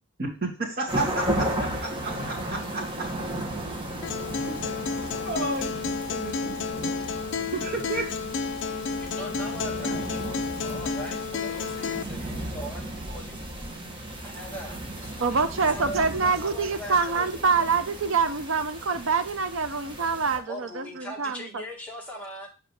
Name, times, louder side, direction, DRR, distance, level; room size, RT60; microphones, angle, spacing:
voice 1, 0.2-3.1 4.9-5.7 6.1-6.9 7.4-8.1 8.7-8.8, right 2 dB, 55° right, -2 dB, 2.5 m, -32 dB
sound 1, 0.9-20.4, right 1 dB, 25° right, 1.4 m, -35 dB
Acoustic guitar, 4.0-12.0, left 5 dB, 65° left, 0.5 m, -31 dB
voice 2, 9.0-13.4 14.2-17.8 20.4-22.5, equal, 10° left, -3 dB, 2.0 m, -41 dB
voice 3, 15.2-21.5, right 5 dB, 70° right, 9 dB, 0.8 m, -25 dB
6.6 x 5.3 x 3.4 m, 0.34 s
head